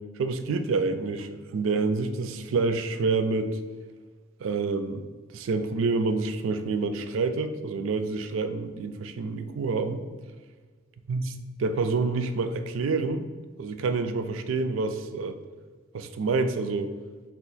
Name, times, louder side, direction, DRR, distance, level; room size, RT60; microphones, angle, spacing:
voice 1, 0.2-3.6 4.4-5.0 5.3-10.0 11.1-11.2 11.6-13.3 13.6-15.4 15.9-16.9, right 4 dB, 70° right, 9 dB, 0.3 m, -27 dB
4.6 x 2.4 x 4.0 m, 1.4 s
head